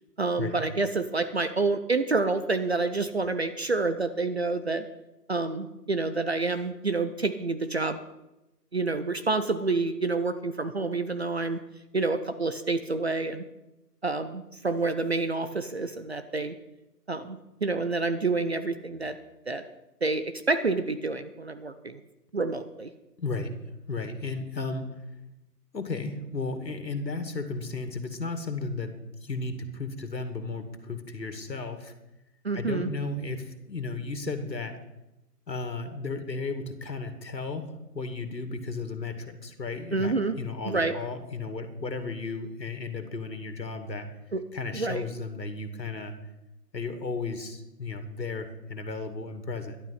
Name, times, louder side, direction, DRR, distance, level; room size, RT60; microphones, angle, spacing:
voice 1, 0.2-4.9 5.3-8.0 8.7-11.6 11.9-13.4 14.0-16.5 17.1-19.2 19.5-19.6 20.0-22.0 22.3-22.9 32.4-32.9 39.9-40.4 40.7-40.9 44.3-44.4 44.7-45.1, right 3 dB, 40° right, 10 dB, 0.7 m, -28 dB
voice 2, 23.2-23.5 23.9-25.0 25.7-31.9 32.5-34.8 35.5-44.1 44.5-46.1 46.7-49.8, left 3 dB, 85° left, 8 dB, 2.4 m, -34 dB
11.5 x 11.5 x 5.8 m, 0.92 s
figure-of-eight pair, 165°, 49 cm